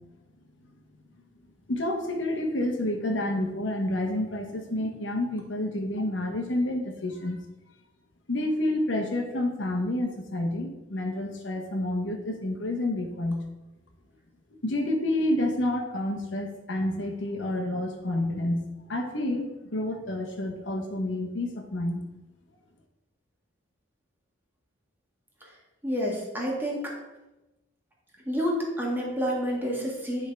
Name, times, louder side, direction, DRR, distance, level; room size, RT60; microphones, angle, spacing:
voice 1, 1.7-7.4 8.3-13.4 14.6-22.0, left 1 dB, 75° left, 3 dB, 1.1 m, -29 dB
voice 2, 25.8-26.9 28.2-30.3, equal, 10° right, -3 dB, 1.8 m, -29 dB
9.7 x 3.7 x 4.6 m, 1.0 s
head